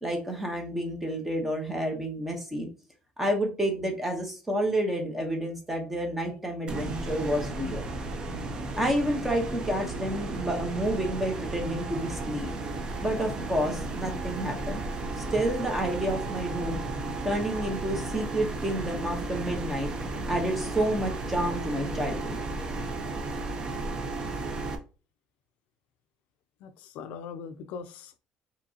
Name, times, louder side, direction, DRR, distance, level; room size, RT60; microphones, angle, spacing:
voice 1, 0.0-2.7 3.2-7.8 8.8-12.5 13.0-14.8 15.2-16.8 17.2-19.9 20.3-22.4, right 1 dB, 10° right, 1.0 m, -29 dB
sound 1, 6.7-24.8, right 2 dB, 30° right, 0.6 m, -34 dB
voice 2, 26.6-28.2, left 6 dB, 70° left, 0.4 m, -41 dB
5.0 x 3.0 x 2.8 m
cardioid pair, 160°, 3 cm